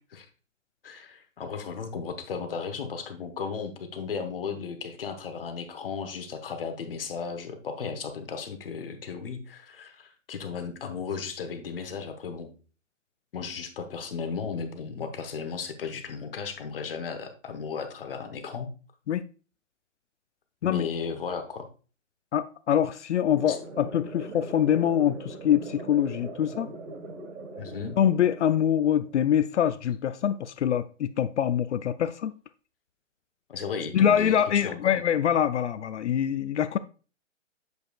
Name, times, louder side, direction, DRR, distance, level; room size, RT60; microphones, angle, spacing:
voice 1, 0.8-12.5 13.3-18.7 20.6-21.7 23.5-23.6 27.6-28.0 33.5-35.0, left 6 dB, 45° left, 1.0 m, -35 dB
voice 2, 22.3-26.7 28.0-32.3 33.9-36.8, left 9 dB, 65° left, 0.5 m, -24 dB
sound 1, 23.3-29.3, right 2 dB, 70° right, 1.5 m, -41 dB
7.8 x 5.2 x 2.3 m
hypercardioid pair, 170°, 38 cm